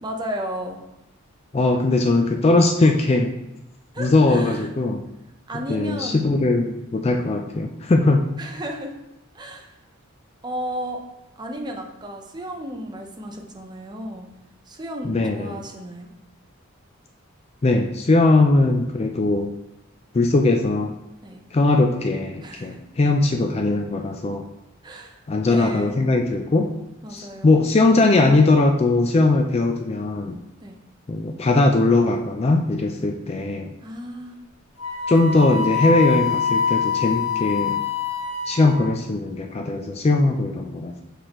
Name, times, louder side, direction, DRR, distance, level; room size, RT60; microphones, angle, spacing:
voice 1, 0.0-0.8 3.9-4.7 5.5-6.2 8.4-8.9 9.3-9.8 10.4-11.0 11.4-14.3 14.7-16.1 21.2-21.4 22.4-22.8 24.8-25.9 27.0-27.6 30.6-30.8 33.8-34.4, equal, 20° right, 2 dB, 0.7 m, -34 dB
voice 2, 1.5-3.3 4.0-5.0 5.7-8.2 15.0-15.5 17.6-19.5 20.1-20.9 21.5-24.4 25.3-26.7 27.1-30.3 31.1-33.7 35.1-37.7 38.5-41.0, left 2 dB, 30° left, 4 dB, 0.3 m, -20 dB
Wind instrument woodwind instrument, 34.8-39.0, left 6 dB, 75° left, 2.1 m, -25 dB
6.2 x 5.1 x 3.0 m, 0.90 s
head